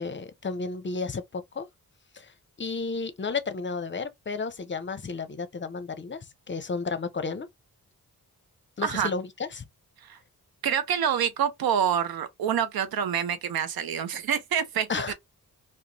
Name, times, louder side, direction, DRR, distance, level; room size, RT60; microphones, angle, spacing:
voice 1, 0.0-1.7 2.1-2.3 2.6-6.2 6.5-7.5 8.8-9.6 14.9-15.1, left 4 dB, 30° left, 0.6 m, -32 dB
voice 2, 10.6-15.1, right 8 dB, 75° right, 0.7 m, -27 dB
2.4 x 2.2 x 2.9 m
cardioid pair, 50°, 36 cm